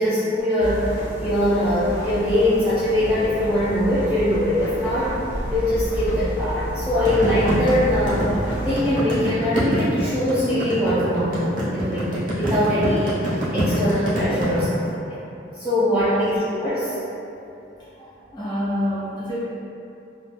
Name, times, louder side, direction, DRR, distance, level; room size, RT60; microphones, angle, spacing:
voice 1, 0.0-5.2 5.5-8.3 8.6-15.2 15.5-17.0, left 1 dB, 5° right, -14 dB, 0.4 m, -22 dB
sound 1, 0.6-8.8, equal, 70° left, 0.4 m, -30 dB
sound 2, 7.1-14.6, right 1 dB, 45° right, 0.7 m, -25 dB
voice 2, 17.8-19.4, left 1 dB, 25° left, -11 dB, 0.8 m, -28 dB
2.2 x 2.1 x 3.1 m, 2.8 s
head